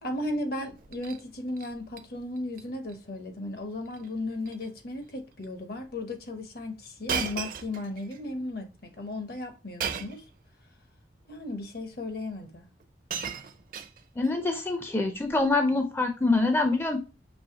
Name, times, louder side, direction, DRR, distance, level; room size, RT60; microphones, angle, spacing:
voice 1, 0.0-10.2 11.3-12.7, left 2 dB, 55° left, 0.8 m, -35 dB
Shatter, 0.7-1.2 1.6-2.0 2.4-2.6 2.9-3.0 3.9-4.1 4.4-4.7 5.4-5.5 7.1-8.2 9.8-10.3 11.3-11.4 12.4-12.5 12.8-14.3 15.3-15.5, right 6 dB, 50° right, 0.5 m, -36 dB
voice 2, 14.2-17.0, left 3 dB, 15° left, 0.4 m, -25 dB
5.4 x 3.1 x 2.8 m
head